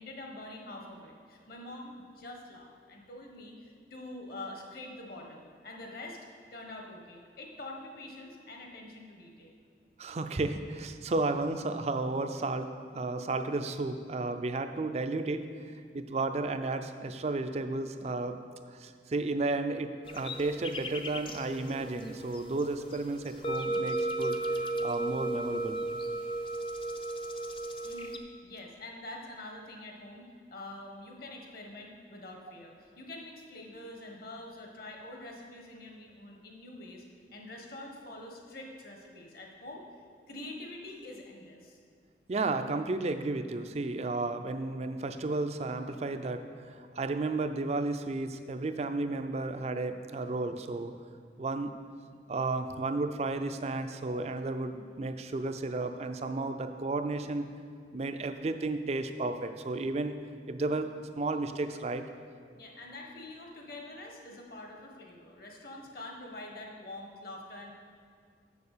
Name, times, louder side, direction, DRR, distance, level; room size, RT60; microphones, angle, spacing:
voice 1, 0.0-6.2 6.5-9.5 27.8-37.0 37.3-39.8 40.3-41.8 62.5-67.7, left 2 dB, 55° left, 1 dB, 1.3 m, -45 dB
voice 2, 10.0-12.7 12.9-15.5 15.9-18.4 18.7-24.4 24.8-25.9 42.3-50.9 51.4-51.8 52.3-57.5 57.9-60.2 60.5-62.0, right 2 dB, 35° right, 8 dB, 0.4 m, -33 dB
sound 1, 20.0-28.2, right 2 dB, 30° left, 0.5 m, -35 dB
7.1 x 7.0 x 6.6 m, 2.1 s
head